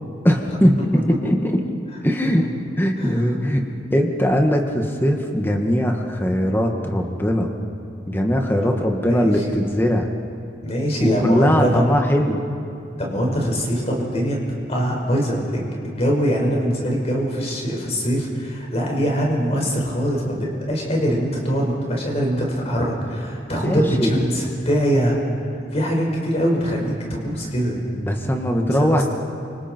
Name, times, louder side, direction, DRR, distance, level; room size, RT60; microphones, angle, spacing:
voice 1, 0.2-1.5 2.0-2.5 2.8-3.6 3.9-7.5 8.1-10.1 11.0-12.4 23.5-24.2 28.0-29.0, equal, 10° left, 2 dB, 1.8 m, -20 dB
voice 2, 3.0-3.4 8.8-9.6 10.6-11.8 13.0-20.3 20.7-25.2 25.7-27.8 28.6-29.0, equal, 35° left, -2 dB, 5.3 m, -23 dB
29.0 x 26.5 x 4.6 m, 2.8 s
head